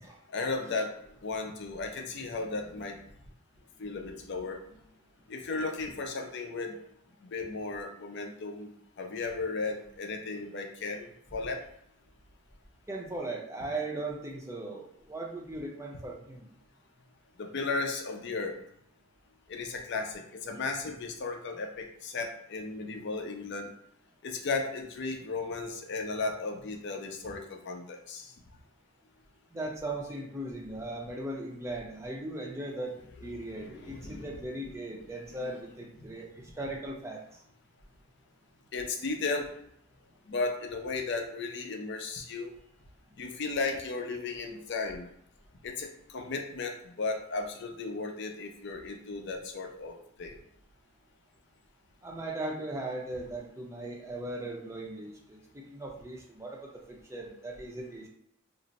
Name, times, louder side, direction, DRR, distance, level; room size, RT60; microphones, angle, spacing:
voice 1, 0.3-3.0 3.8-4.6 5.3-6.8 7.2-11.6 17.4-18.6 19.5-23.7 24.2-28.3 33.6-34.3 35.4-35.5 38.7-39.5 40.3-42.5 43.2-45.1 45.6-50.4, left 3 dB, 50° left, 3 dB, 0.5 m, -35 dB
voice 2, 12.9-16.5 29.5-32.9 33.2-36.3 36.6-37.2 52.0-58.1, right 2 dB, 15° right, -1 dB, 0.5 m, -38 dB
2.6 x 2.0 x 3.9 m, 0.72 s
head